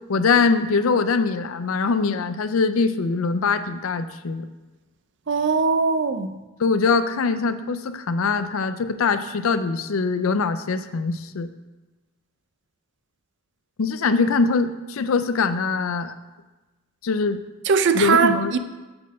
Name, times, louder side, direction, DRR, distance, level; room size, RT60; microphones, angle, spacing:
voice 1, 0.1-4.5 6.6-11.5 13.8-16.1 17.0-17.4 17.9-18.5, left 4 dB, 80° left, 0.5 m, -22 dB
voice 2, 5.3-6.4 17.7-18.6, right 5 dB, 60° right, 0.5 m, -20 dB
8.5 x 4.4 x 6.5 m
head